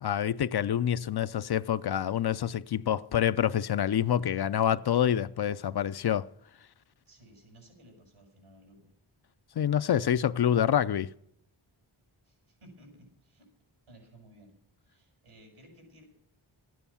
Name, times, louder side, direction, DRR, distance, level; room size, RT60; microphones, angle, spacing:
voice 1, 0.0-6.3 9.6-11.1, left 10 dB, 55° left, 0.5 m, -27 dB
voice 2, 7.0-8.9 12.2-13.5 13.9-14.5 14.8-16.0, right 1 dB, 90° right, 6.5 m, -56 dB
13.5 x 9.4 x 7.0 m
wide cardioid pair, 75°, 49 cm